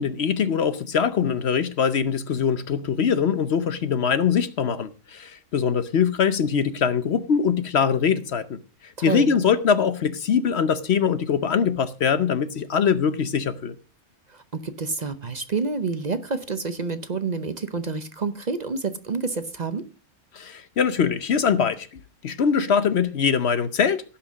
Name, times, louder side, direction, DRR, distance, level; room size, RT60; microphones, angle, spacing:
voice 1, 0.0-8.6 9.0-13.7 20.3-21.9 22.2-24.0, left 7 dB, 55° left, 0.8 m, -22 dB
voice 2, 9.0-9.3 14.3-19.8, right 4 dB, 45° right, 0.6 m, -28 dB
16.5 x 5.9 x 6.1 m
omnidirectional pair, 1.6 m